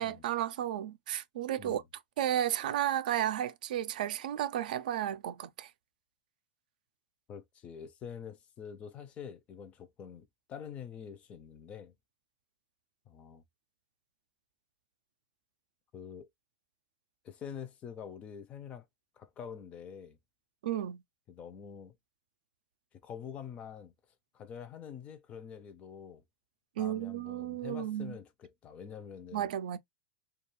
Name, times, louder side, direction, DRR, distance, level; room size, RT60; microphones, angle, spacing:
voice 1, 0.0-1.8 2.2-5.7 20.6-21.0 26.8-28.2 29.3-29.8, right 11 dB, 85° right, 0.4 m, -33 dB
voice 2, 7.3-11.9 13.1-13.4 15.9-16.3 17.2-18.9 19.2-20.2 21.3-22.0 23.0-23.9 24.3-26.2 26.8-29.5, left 7 dB, 30° left, 0.4 m, -46 dB
2.3 x 2.3 x 3.0 m
supercardioid pair, 145°, 4 cm